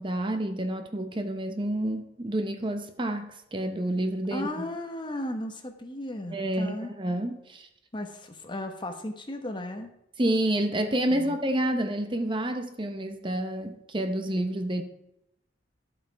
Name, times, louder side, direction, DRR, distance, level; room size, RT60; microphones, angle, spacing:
voice 1, 0.0-4.7 6.3-7.7 10.2-14.8, right 1 dB, 25° right, 7 dB, 0.8 m, -29 dB
voice 2, 4.3-6.9 7.9-9.9 11.1-11.4, left 1 dB, 25° left, 5 dB, 1.1 m, -35 dB
12.0 x 7.5 x 4.7 m, 0.80 s
head